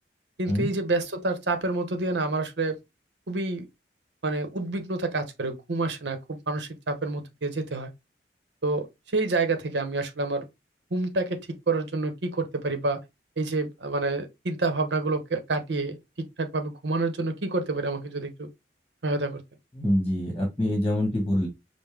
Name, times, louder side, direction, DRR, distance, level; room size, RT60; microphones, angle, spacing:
voice 1, 0.4-2.8 3.3-3.6 4.2-7.9 8.6-8.9 9.1-10.4 10.9-11.4 11.7-13.0 13.4-18.5 19.0-19.4, right 3 dB, 80° right, 0.8 m, -28 dB
voice 2, 19.7-21.5, left 1 dB, 15° left, 1.2 m, -25 dB
5.3 x 2.1 x 3.4 m
head